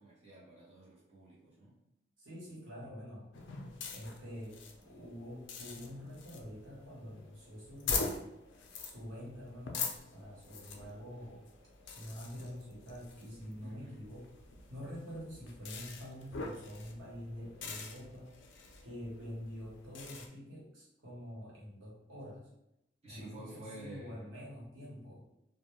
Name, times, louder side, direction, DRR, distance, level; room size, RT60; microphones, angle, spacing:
voice 1, 0.0-1.7 13.6-14.0 23.0-24.3, right 1 dB, 35° right, -7 dB, 0.7 m, -50 dB
voice 2, 2.2-3.3 3.9-8.1 8.8-11.5 11.9-14.3 14.7-18.3 18.8-22.5 23.1-25.2, equal, 85° right, -5 dB, 1.0 m, -46 dB
sound 1, 3.3-20.3, left 4 dB, 70° left, 0.4 m, -44 dB
2.2 x 2.1 x 3.0 m, 0.86 s
head